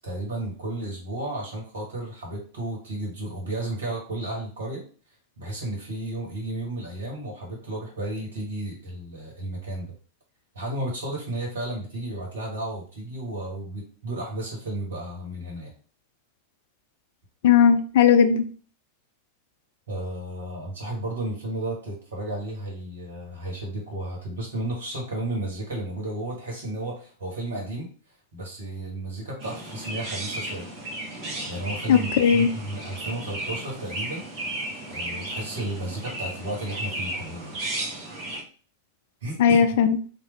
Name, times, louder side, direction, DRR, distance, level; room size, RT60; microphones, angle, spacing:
voice 1, 0.0-4.8 5.4-9.9 10.5-15.7 19.9-27.9 28.3-30.7 31.5-34.3 34.9-37.6 39.2-39.6, right 1 dB, 65° right, -1 dB, 1.5 m, -33 dB
voice 2, 17.4-18.4 31.9-32.5 39.4-40.0, left 7 dB, 55° left, 9 dB, 0.4 m, -17 dB
Chirp tweet, 29.4-38.4, right 1 dB, 40° right, 1.2 m, -34 dB
3.3 x 2.6 x 3.2 m, 0.41 s
figure-of-eight pair, 90°, 0 cm